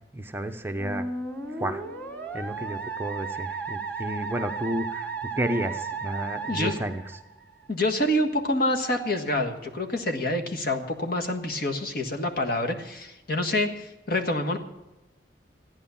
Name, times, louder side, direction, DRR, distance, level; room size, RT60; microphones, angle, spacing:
voice 1, 0.1-1.0 1.6-1.8 2.3-5.1 5.4-7.0, right 1 dB, 15° right, 6 dB, 0.7 m, -31 dB
Musical instrument, 0.8-7.7, right 4 dB, 10° left, 2.5 m, -34 dB
voice 2, 7.7-14.6, left 1 dB, 60° left, 5 dB, 1.7 m, -27 dB
15.5 x 9.9 x 7.1 m, 0.99 s
head